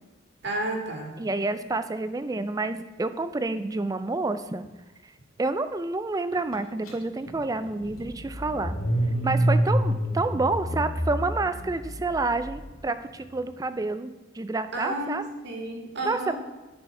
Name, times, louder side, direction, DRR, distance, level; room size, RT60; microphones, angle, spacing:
voice 1, 0.4-1.1 14.7-16.4, right 1 dB, 55° right, 1 dB, 1.9 m, -31 dB
voice 2, 1.2-4.7 5.4-8.8 9.2-15.3 16.0-16.2, right 3 dB, 15° right, 11 dB, 0.3 m, -29 dB
Car / Engine starting, 6.9-7.0 7.3-12.5, right 1 dB, 90° left, 2.3 m, -27 dB
11.0 x 4.5 x 5.3 m, 1.2 s
head